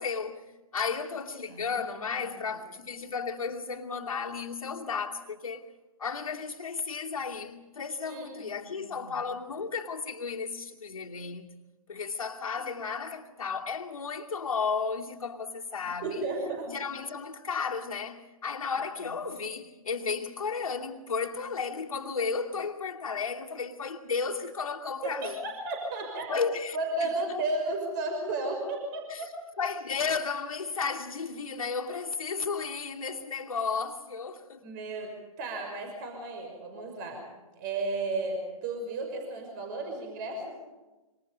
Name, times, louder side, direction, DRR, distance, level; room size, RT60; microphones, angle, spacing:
voice 1, 0.0-5.6 6.0-11.6 11.9-16.2 16.7-25.4 26.3-27.1 29.1-29.3 29.6-34.7, left 5 dB, 70° left, 2.7 m, -33 dB
voice 2, 2.1-2.6 8.1-9.2 16.0-16.7 19.0-19.1 25.0-26.4 26.7-29.3 34.6-37.3 37.6-40.6, right 2 dB, 35° right, 5.9 m, -34 dB
27.0 x 26.0 x 5.5 m
figure-of-eight pair, 135°, 18 cm